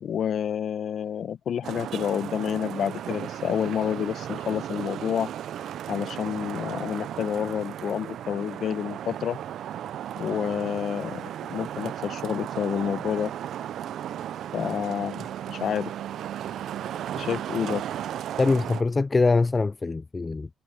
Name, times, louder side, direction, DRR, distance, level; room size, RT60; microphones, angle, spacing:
voice 1, 0.0-5.3 5.9-9.4 10.2-13.3 14.5-15.9 17.2-17.8, left 8 dB, 60° left, 1.0 m, -29 dB
Traffic noise roadway noise, 1.6-18.8, right 10 dB, 70° right, 0.4 m, -35 dB
voice 2, 18.4-20.5, left 3 dB, 25° left, 0.3 m, -23 dB
cardioid pair, 90°, 0 cm